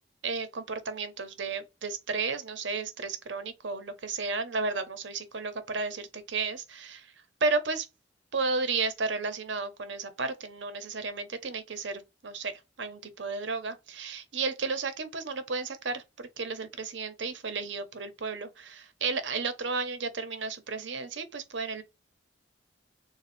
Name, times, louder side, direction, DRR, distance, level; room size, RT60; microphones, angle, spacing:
voice 1, 0.2-7.1 7.4-7.9 8.3-12.5 12.8-21.8, right 4 dB, 85° right, 0.8 m, -33 dB
6.7 x 2.3 x 2.6 m
head